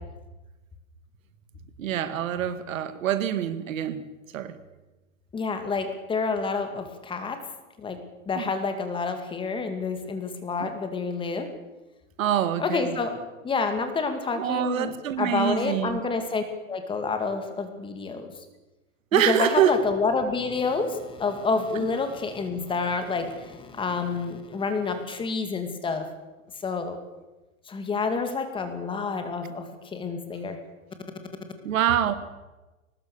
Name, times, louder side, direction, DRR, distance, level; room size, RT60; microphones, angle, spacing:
voice 1, 1.8-4.0 4.3-4.6 8.4-8.5 10.6-10.7 12.2-13.0 14.4-16.0 19.1-19.8 31.6-32.1, right 10 dB, 75° right, 12 dB, 2.2 m, -25 dB
voice 2, 5.3-7.4 7.8-8.0 8.3-11.5 12.6-18.3 19.1-26.1 26.6-27.0 27.7-30.6, left 4 dB, 10° left, 7 dB, 2.3 m, -28 dB
22.5 x 20.0 x 7.1 m, 1.1 s
supercardioid pair, 160°, 40 cm